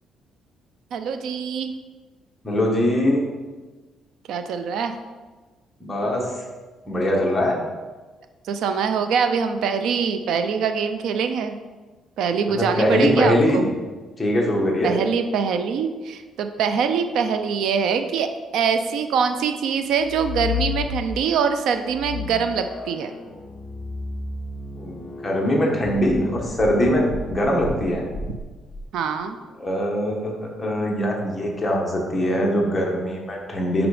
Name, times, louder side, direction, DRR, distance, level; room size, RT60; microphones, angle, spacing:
voice 1, 0.9-1.7 4.3-4.9 8.4-11.6 12.2-13.7 14.8-18.3 18.5-23.1 28.3-28.4 28.9-29.4, right 6 dB, 70° right, 8 dB, 0.4 m, -23 dB
voice 2, 2.4-3.2 5.8-6.2 6.9-7.6 12.5-13.7 14.2-15.0 24.8-28.0 29.6-33.9, equal, 15° left, -2 dB, 1.3 m, -22 dB
sound 1, 20.0-21.4 21.9-28.8, left 5 dB, 45° left, 1.0 m, -32 dB
6.0 x 5.1 x 4.9 m, 1.3 s
cardioid pair, 155°, 0 cm